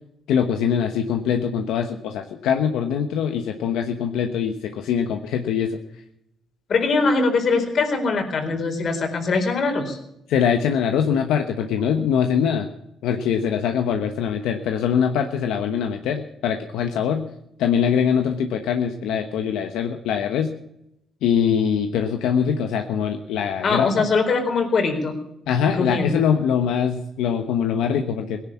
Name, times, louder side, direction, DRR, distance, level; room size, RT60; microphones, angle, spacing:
voice 1, 0.3-5.8 10.3-12.7 13.0-17.2 17.6-20.5 21.2-24.0 25.5-28.4, left 7 dB, 90° left, 5 dB, 1.1 m, -23 dB
voice 2, 6.7-10.0 23.6-25.2 25.8-26.1, left 4 dB, 55° left, 5 dB, 4.2 m, -22 dB
18.0 x 10.5 x 7.2 m, 0.81 s
cardioid pair, 90°, 0 cm